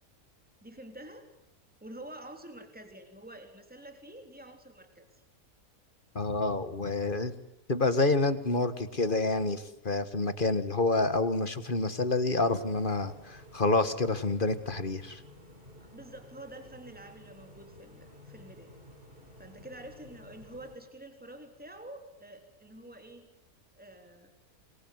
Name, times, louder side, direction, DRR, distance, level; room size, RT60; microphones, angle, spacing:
voice 1, 0.6-1.3 1.8-5.2 15.8-18.7 19.4-23.3 23.8-24.3, right 1 dB, 5° right, 5 dB, 3.4 m, -48 dB
voice 2, 6.2-7.3 7.7-15.2, left 2 dB, 35° left, 12 dB, 1.7 m, -28 dB
sound 1, 12.3-20.8, left 1 dB, 35° right, 5.5 m, -53 dB
27.0 x 22.5 x 9.6 m, 0.79 s
omnidirectional pair, 1.5 m